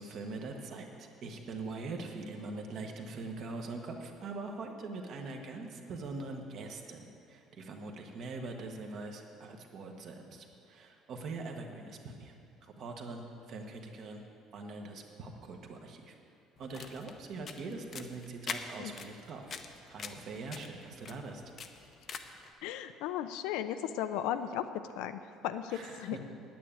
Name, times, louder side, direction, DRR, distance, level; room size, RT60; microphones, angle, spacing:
voice 1, 0.0-12.3 12.6-14.2 14.5-16.2 16.6-19.6 19.9-21.4 25.7-26.2, right 3 dB, 45° right, 3 dB, 1.3 m, -43 dB
sound 1, 16.6-22.5, left 6 dB, 30° left, 0.6 m, -45 dB
voice 2, 22.6-24.6 25.0-26.2, left 11 dB, 85° left, 10 dB, 0.6 m, -36 dB
9.3 x 9.3 x 8.8 m, 2.6 s
cardioid pair, 170°, 0 cm